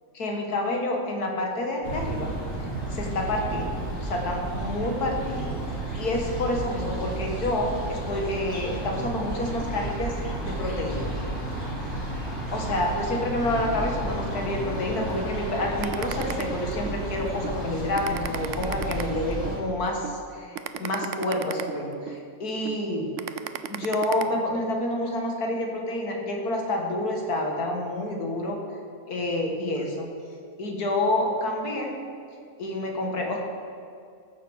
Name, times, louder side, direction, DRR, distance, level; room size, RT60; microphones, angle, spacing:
voice 1, 0.1-2.3 2.9-5.5 6.0-10.1 10.4-11.1 12.5-23.1 23.7-28.6 29.1-30.1 30.6-31.9 32.6-33.4, left 1 dB, 80° left, 1 dB, 2.2 m, -28 dB
sound 1, 1.8-19.6, right 1 dB, 45° left, 3.1 m, -32 dB
sound 2, 15.8-17.0 17.4-17.6 18.0-19.6 20.0-20.2 20.5-22.2 22.6-22.8 23.2-24.2, right 10 dB, 65° right, 0.8 m, -34 dB
14.5 x 6.5 x 6.5 m, 2.3 s
omnidirectional pair, 1.6 m